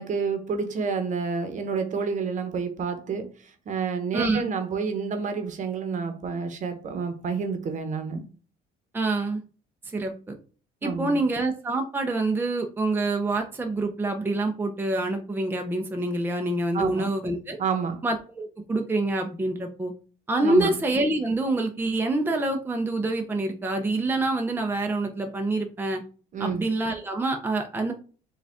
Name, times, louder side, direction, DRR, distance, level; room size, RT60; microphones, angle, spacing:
voice 1, 0.0-8.3 10.8-11.2 16.7-17.1 17.6-18.0 20.4-20.7 26.3-26.6, right 5 dB, 45° right, 1.0 m, -29 dB
voice 2, 8.9-9.4 9.9-10.3 10.8-17.6 18.0-19.9 20.3-26.0 26.4-27.9, right 2 dB, 10° right, 0.6 m, -26 dB
4.9 x 2.5 x 3.5 m
cardioid pair, 110°, 17 cm